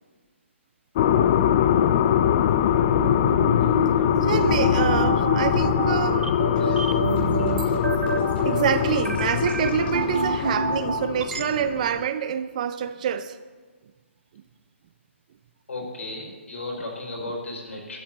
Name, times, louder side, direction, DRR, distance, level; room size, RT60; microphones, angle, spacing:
sound 1, 1.0-12.1, left 9 dB, 30° left, 0.4 m, -22 dB
sound 2, 3.0-11.4, right 4 dB, 80° right, 1.2 m, -28 dB
voice 1, 4.2-6.3 6.5-6.9 7.4-7.6 8.4-13.4 17.3-17.4, right 9 dB, 35° right, 0.6 m, -27 dB
sound 3, 6.1-10.4, left 2 dB, 50° left, 5.5 m, -44 dB
voice 2, 15.7-18.0, left 2 dB, 80° left, 5.2 m, -34 dB
12.5 x 7.8 x 9.0 m
hypercardioid pair, 160°, 7 cm